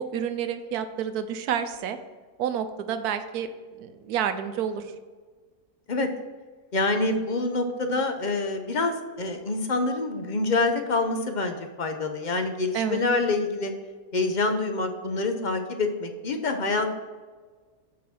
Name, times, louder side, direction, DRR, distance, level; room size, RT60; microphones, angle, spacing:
voice 1, 0.0-2.0 2.4-3.5 3.8-4.8 12.7-13.0, right 8 dB, 85° right, 9 dB, 1.2 m, -29 dB
voice 2, 6.7-13.7 14.1-16.9, left 3 dB, 45° left, 6 dB, 0.6 m, -26 dB
8.5 x 3.9 x 5.9 m, 1.4 s
omnidirectional pair, 1.6 m